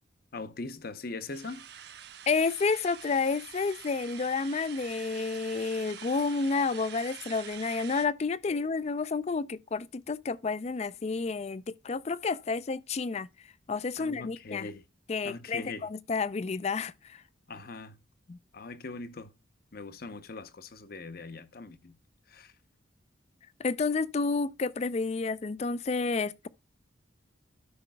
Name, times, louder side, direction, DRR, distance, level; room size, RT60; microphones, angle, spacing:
voice 1, 0.3-1.6 8.5-8.6 14.0-14.8 15.2-15.9 17.5-18.0 18.5-19.3 19.7-21.9 22.3-22.5, left 3 dB, 50° left, 0.7 m, -41 dB
sound 1, 1.3-8.1, right 9 dB, 55° right, 0.9 m, -46 dB
voice 2, 2.3-13.3 13.7-14.7 15.1-16.9 18.3-18.4 23.6-26.5, left 4 dB, 35° left, 0.4 m, -30 dB
12.5 x 5.7 x 2.2 m
head